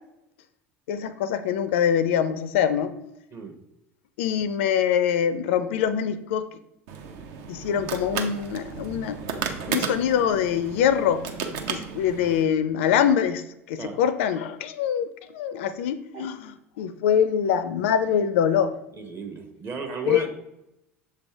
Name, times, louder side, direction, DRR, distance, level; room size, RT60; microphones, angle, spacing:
voice 1, 0.9-2.9 4.2-6.5 7.5-9.2 9.7-11.3 11.7-18.7 20.1-20.3, left 8 dB, 60° left, 13 dB, 0.4 m, -24 dB
sound 1, 6.9-12.4, right 6 dB, 55° right, 0.7 m, -33 dB
voice 2, 18.9-20.3, right 4 dB, 30° right, 4 dB, 1.1 m, -35 dB
6.7 x 3.5 x 4.4 m, 0.87 s
figure-of-eight pair, 70°, 8 cm